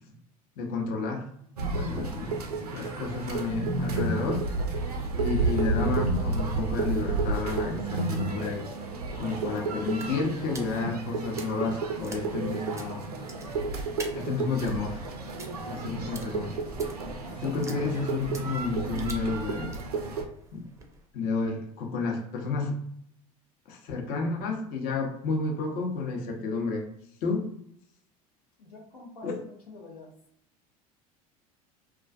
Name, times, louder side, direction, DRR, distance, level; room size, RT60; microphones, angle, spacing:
voice 1, 0.6-1.3 1.7-2.4 2.7-4.4 5.1-8.7 9.2-13.1 14.1-15.0 15.7-16.6 17.4-19.7 20.5-20.6 21.1-22.8 23.7-26.9 27.2-27.5 29.2-29.4, left 4 dB, 50° left, 1 dB, 0.7 m, -31 dB
sound 1, 1.6-20.2, right 3 dB, 90° right, 0.4 m, -31 dB
sound 2, 9.5-21.1, right 2 dB, 15° right, 0.5 m, -48 dB
voice 2, 28.6-30.1, left 2 dB, 90° left, -3 dB, 0.6 m, -47 dB
2.3 x 2.3 x 2.5 m, 0.68 s
hypercardioid pair, 75°, 19 cm